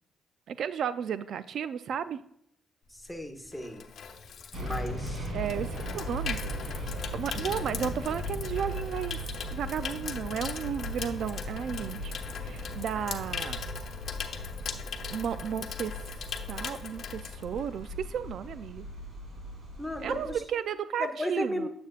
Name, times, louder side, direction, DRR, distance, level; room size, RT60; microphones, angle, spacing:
voice 1, 0.5-2.2 5.3-6.4 7.1-9.2 9.5-12.1 12.4-13.7 15.1-15.9 16.5-18.8 20.0-21.7, right 8 dB, 65° right, 13 dB, 0.3 m, -33 dB
voice 2, 2.9-3.9 4.6-5.3 19.8-20.4 21.0-21.7, left 1 dB, ahead, 3 dB, 1.2 m, -35 dB
Water tap faucet / Sink (filling or washing), 3.0-18.0 18.3-18.6, left 6 dB, 60° left, 0.9 m, -40 dB
sound 1, 4.5-20.4, equal, 50° right, 2.7 m, -38 dB
9.2 x 7.7 x 2.4 m, 0.74 s
cardioid pair, 110°, 0 cm